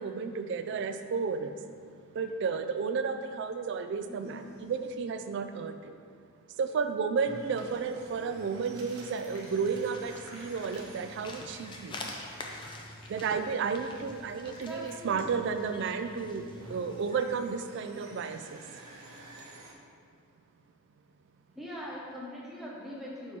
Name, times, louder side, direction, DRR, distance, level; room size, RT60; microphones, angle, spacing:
voice 1, 0.0-1.5 2.1-5.9 6.6-12.0 13.1-18.6, right 5 dB, 55° right, 8 dB, 0.3 m, -32 dB
voice 2, 4.1-4.6 14.7-15.3 21.5-23.4, equal, ahead, -7 dB, 1.0 m, -42 dB
sound 1, 4.2-5.1 7.2-14.3 16.1-19.7, right 2 dB, 85° right, 0.8 m, -51 dB
sound 2, 9.0-15.5, left 2 dB, 70° left, 1.2 m, -54 dB
sound 3, 9.1-17.4, left 2 dB, 25° left, 0.5 m, -46 dB
5.9 x 4.2 x 4.4 m, 2.2 s
head